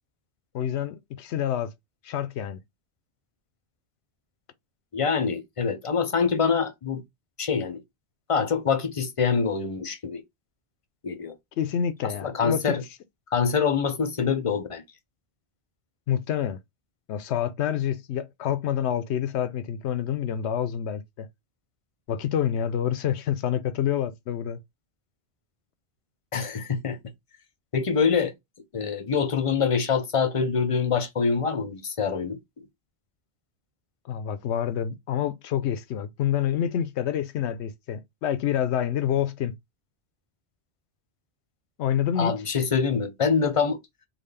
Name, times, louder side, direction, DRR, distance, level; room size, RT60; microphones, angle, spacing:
voice 1, 0.5-1.7 2.0-2.6 11.6-12.7 16.1-16.6 17.1-21.3 22.1-24.6 34.1-39.5 41.8-42.3, left 9 dB, 85° left, 0.9 m, -27 dB
voice 2, 4.9-7.0 7.4-7.8 8.3-10.2 11.0-11.3 12.2-12.8 13.3-14.8 26.3-27.0 27.7-28.3 28.7-32.7 42.2-43.8, left 6 dB, 40° left, 0.6 m, -25 dB
3.8 x 2.3 x 3.3 m
omnidirectional pair, 1.1 m